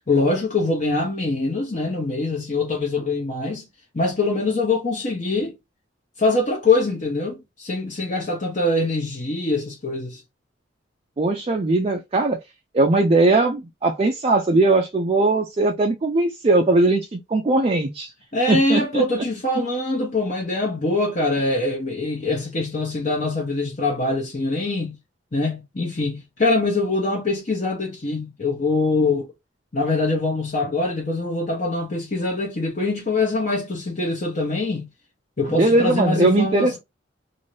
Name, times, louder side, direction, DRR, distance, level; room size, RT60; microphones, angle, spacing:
voice 1, 0.1-3.6 3.9-5.5 6.2-10.2 18.3-24.9 25.3-29.3 29.7-34.9 35.4-36.8, left 2 dB, 40° left, 0.9 m, -23 dB
voice 2, 11.2-12.4 12.7-18.1 18.5-19.0 35.6-36.8, right 2 dB, 30° right, 0.4 m, -19 dB
2.7 x 2.7 x 3.0 m
head